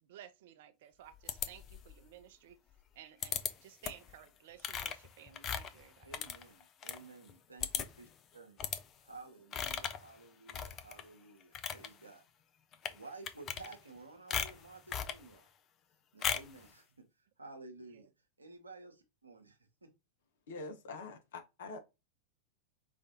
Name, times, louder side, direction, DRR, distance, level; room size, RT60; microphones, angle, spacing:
voice 1, 0.0-2.6 2.9-6.1 17.9-18.1, right 10 dB, 55° right, 0.5 m, -55 dB
sound 1, 1.3-2.0 3.2-3.5 3.8-4.1 4.6-7.0 7.3-7.4 7.6-8.1 8.6-8.8 9.5-10.1 10.5-11.0 11.4-11.9 12.7-13.0 13.3-14.0 14.3-15.2 16.2-16.6, left 8 dB, 30° left, 0.5 m, -37 dB
voice 2, 6.0-8.1 8.3-8.6 9.0-12.2 12.9-15.5 16.1-18.1 18.4-19.9, right 3 dB, 80° right, 0.9 m, -53 dB
voice 3, 20.5-21.8, left 3 dB, 60° left, 0.9 m, -45 dB
4.9 x 2.6 x 2.7 m
figure-of-eight pair, 90°, 0 cm